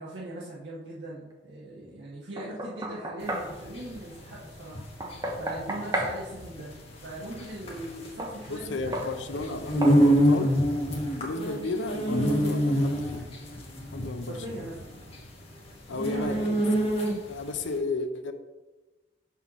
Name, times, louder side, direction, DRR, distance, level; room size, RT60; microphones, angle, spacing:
voice 1, 0.0-6.7 7.0-9.7 11.5-11.6 14.3-14.9 16.0-16.7 17.6-17.7, right 1 dB, 75° right, -6 dB, 1.3 m, -40 dB
Knock, 2.4-3.5 5.0-6.2 8.2-8.4 8.9-9.1 9.8-10.0, right 1 dB, 20° right, 0.8 m, -32 dB
sound 1, 3.3-17.5, equal, 35° left, 1.4 m, -26 dB
voice 2, 8.5-10.5 11.2-13.4 13.9-14.7 15.9-16.6 17.3-18.3, left 3 dB, 90° left, 8 dB, 0.6 m, -34 dB
5.6 x 4.0 x 6.1 m, 1.1 s
head